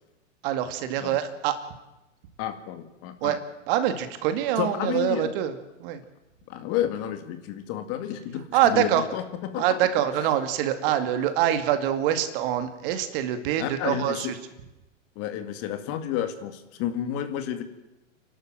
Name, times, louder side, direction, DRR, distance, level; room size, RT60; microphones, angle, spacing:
voice 1, 0.4-1.6 3.2-3.4 3.7-5.5 5.8-6.0 8.5-9.0 9.6-14.3, right 11 dB, 45° right, 9 dB, 2.2 m, -25 dB
voice 2, 2.4-3.4 4.6-5.3 6.5-9.6 10.2-10.3 13.6-14.3 15.2-17.6, left 10 dB, 35° left, 8 dB, 2.2 m, -31 dB
29.0 x 12.0 x 7.7 m, 0.99 s
hypercardioid pair, 120°, 38 cm